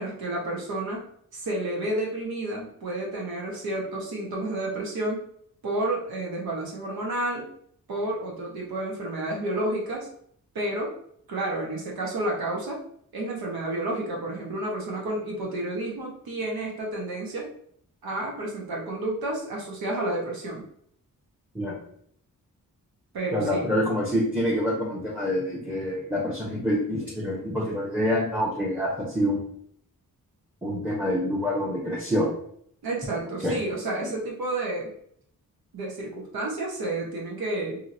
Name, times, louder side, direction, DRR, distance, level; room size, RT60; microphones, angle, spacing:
voice 1, 0.0-5.3 5.6-7.5 7.9-10.1 10.5-10.9 11.3-12.8 13.1-17.5 18.0-20.6 23.1-23.7 32.8-34.9 35.7-37.8, right 1 dB, 90° right, -2 dB, 1.0 m, -30 dB
voice 2, 23.3-29.5 30.6-32.3 33.4-33.6, equal, 5° right, -4 dB, 0.8 m, -26 dB
2.9 x 2.7 x 2.6 m, 0.66 s
cardioid pair, 65°, 35 cm